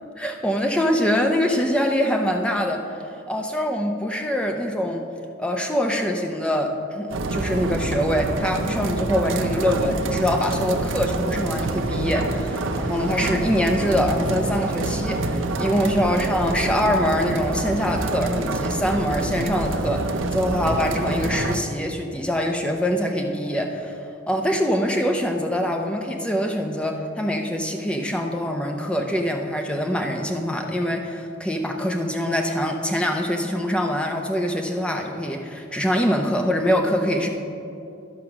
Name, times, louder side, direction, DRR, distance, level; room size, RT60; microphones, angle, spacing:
voice 1, 0.2-2.8 3.3-5.1 5.4-24.0 24.3-37.3, equal, 5° left, 2 dB, 0.6 m, -24 dB
sound 1, 7.1-21.6, right 2 dB, 80° right, 0.6 m, -26 dB
12.5 x 5.0 x 5.9 m, 2.7 s
head